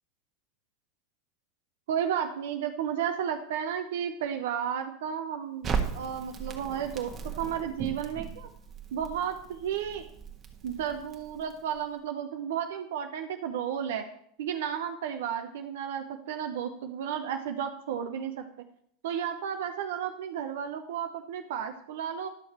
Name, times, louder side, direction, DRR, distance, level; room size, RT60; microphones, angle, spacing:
voice 1, 1.9-7.1 7.4-8.5 8.9-10.0 10.6-14.1 14.4-18.5 19.0-22.3, right 8 dB, 70° right, 6 dB, 0.8 m, -33 dB
Crackle, 5.6-11.8, right 6 dB, 30° right, 1.5 m, -37 dB
11.5 x 6.5 x 4.2 m, 0.66 s
hypercardioid pair, 85°, 0 cm